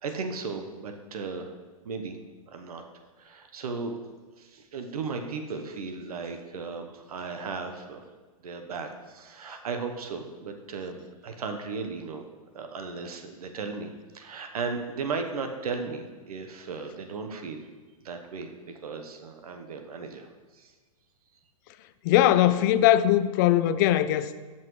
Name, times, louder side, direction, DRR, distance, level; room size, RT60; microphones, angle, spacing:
voice 1, 0.0-1.5 1.8-2.2 2.5-2.8 3.2-4.0 4.4-8.0 8.4-12.2 12.5-17.7 18.0-18.5 18.8-20.7, right 4 dB, 80° right, 1.0 m, -36 dB
voice 2, 22.0-24.3, left 12 dB, 35° left, 0.3 m, -20 dB
12.5 x 5.9 x 3.2 m
hypercardioid pair, 145°, 19 cm